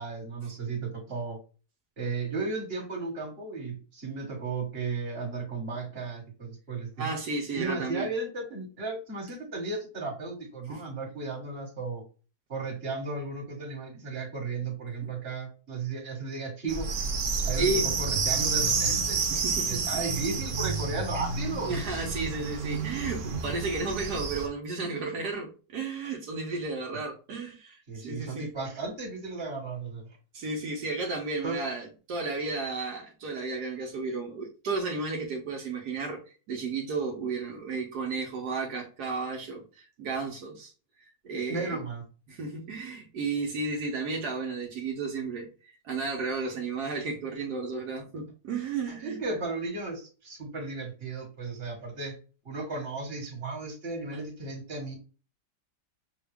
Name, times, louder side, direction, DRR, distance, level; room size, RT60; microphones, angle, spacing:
voice 1, 0.0-1.4 2.0-7.1 7.5-12.0 12.5-16.9 17.4-19.2 19.6-21.8 26.9-27.0 27.9-30.0 31.4-31.6 41.5-42.0 48.9-52.2 52.4-54.9, right 3 dB, 35° right, 0 dB, 1.8 m, -35 dB
voice 2, 7.0-8.1 10.7-10.8 17.6-17.9 19.3-19.9 21.7-28.5 30.3-40.7 41.0-41.8 42.3-49.2, right 3 dB, 75° right, 0 dB, 1.4 m, -33 dB
sound 1, 16.7-24.5, right 4 dB, 55° right, 0.6 m, -30 dB
6.0 x 2.3 x 3.4 m, 0.35 s
omnidirectional pair, 1.8 m